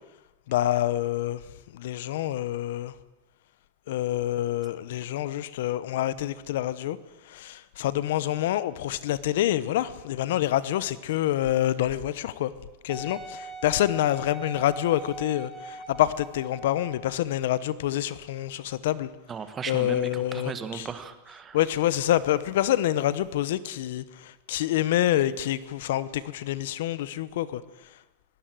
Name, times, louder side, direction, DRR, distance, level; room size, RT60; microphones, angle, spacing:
voice 1, 0.5-1.4 1.7-2.9 3.9-7.0 7.2-12.5 12.8-19.1 19.7-20.9 21.5-27.6, left 13 dB, 65° left, 1.0 m, -27 dB
Wind instrument woodwind instrument, 12.9-17.2 17.9-18.0, right 3 dB, ahead, 2.4 m, -41 dB
voice 2, 19.3-21.6, right 6 dB, 15° right, 1.4 m, -36 dB
22.0 x 17.0 x 7.8 m
supercardioid pair, 165°, 0 cm